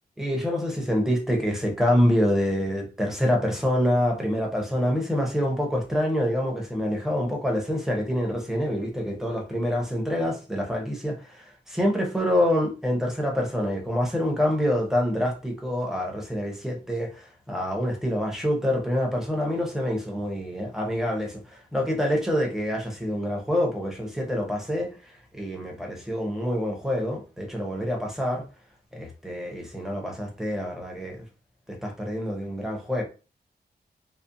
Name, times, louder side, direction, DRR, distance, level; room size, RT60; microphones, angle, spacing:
voice 1, 0.2-17.1 17.5-24.9 25.4-28.4 28.9-31.2 31.8-33.0, equal, 5° right, 0.6 m, -26 dB
2.5 x 2.1 x 2.5 m
wide cardioid pair, 160°, 16 cm